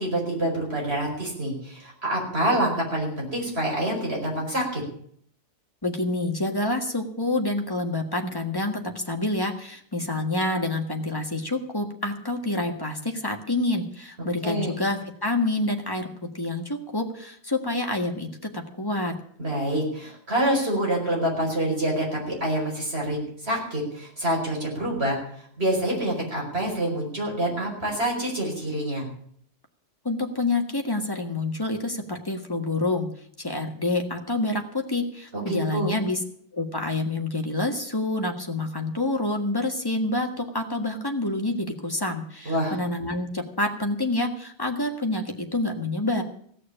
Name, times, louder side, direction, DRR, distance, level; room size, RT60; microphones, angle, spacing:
voice 1, 0.0-4.8 14.4-14.8 19.4-25.2 25.6-29.1 35.3-36.0 42.5-42.7, right 1 dB, 55° right, -2 dB, 5.5 m, -26 dB
voice 2, 5.8-8.8 9.1-16.1 16.3-19.1 30.0-33.1 33.4-36.2 36.5-46.2, left 2 dB, 20° left, 3 dB, 1.7 m, -27 dB
16.5 x 6.4 x 10.0 m, 0.63 s
omnidirectional pair, 1.2 m